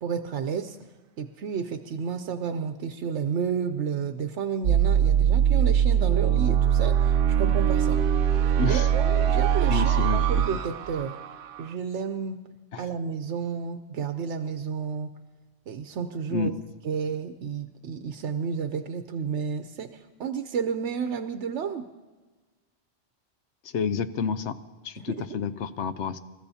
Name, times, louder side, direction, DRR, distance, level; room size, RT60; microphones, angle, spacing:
voice 1, 0.0-0.8 1.2-8.0 8.3-11.2 11.6-12.4 12.8-15.1 15.7-16.5 16.8-21.9 25.0-25.2, right 6 dB, 85° right, 7 dB, 1.0 m, -31 dB
sound 1, 4.6-11.6, right 9 dB, 60° right, 0.7 m, -22 dB
voice 2, 8.6-8.9 9.7-10.4 12.7-12.9 16.3-16.5 23.7-24.6 24.8-26.2, left 5 dB, 80° left, 11 dB, 1.0 m, -29 dB
28.5 x 14.0 x 2.8 m, 1.3 s
omnidirectional pair, 1.1 m